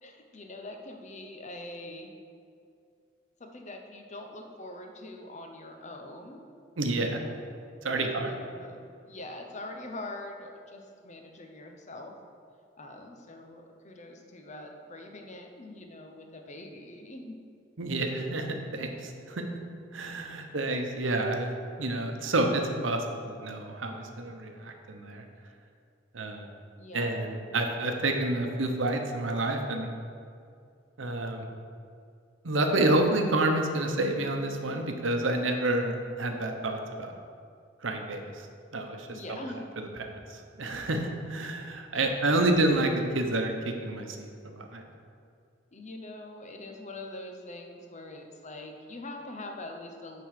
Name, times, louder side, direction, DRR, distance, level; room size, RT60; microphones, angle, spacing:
voice 1, 0.0-2.1 3.4-6.4 7.1-7.3 7.8-12.1 12.8-17.4 26.8-27.1 39.1-39.6 41.9-42.8 45.7-50.2, left 2 dB, 40° left, 3 dB, 0.9 m, -43 dB
voice 2, 6.8-7.2 7.8-8.3 17.8-19.5 19.9-21.5 21.8-25.2 26.1-26.5 26.9-29.9 31.0-31.5 32.4-37.1 37.8-38.5 38.7-39.4 39.8-44.8, right 2 dB, 90° right, 4 dB, 0.9 m, -29 dB
9.4 x 3.8 x 6.5 m, 2.3 s
head